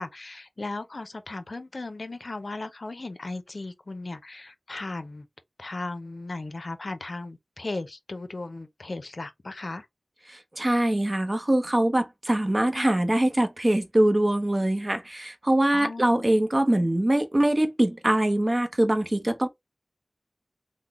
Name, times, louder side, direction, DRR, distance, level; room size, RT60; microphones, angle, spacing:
voice 1, 0.0-5.3 5.6-9.9 15.7-16.2, left 2 dB, 70° left, 0.5 m, -36 dB
voice 2, 10.3-19.5, right 1 dB, 35° right, 0.7 m, -23 dB
3.7 x 2.0 x 3.0 m
wide cardioid pair, 55°, 0 cm